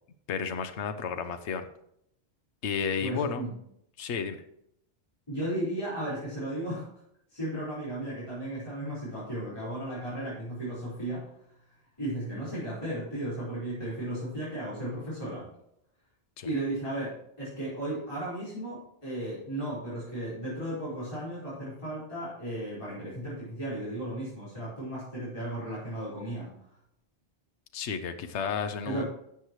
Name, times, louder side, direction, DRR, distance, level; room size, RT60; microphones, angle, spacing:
voice 1, 0.3-1.7 2.6-3.4 4.0-4.4 16.4-16.5 27.7-29.0, left 6 dB, 80° left, 8 dB, 1.0 m, -32 dB
voice 2, 3.0-3.5 5.3-6.8 7.3-11.2 12.0-15.4 16.4-26.5 28.8-29.1, right 1 dB, 25° left, -10 dB, 4.5 m, -35 dB
12.5 x 8.0 x 3.1 m, 0.75 s
omnidirectional pair, 1.2 m